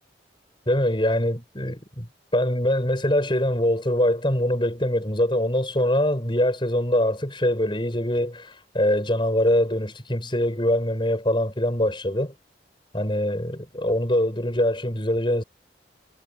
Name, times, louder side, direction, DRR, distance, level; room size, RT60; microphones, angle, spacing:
voice 1, 0.7-2.1 2.3-12.3 12.9-15.4, left 1 dB, 25° left, 6.9 m, -23 dB
head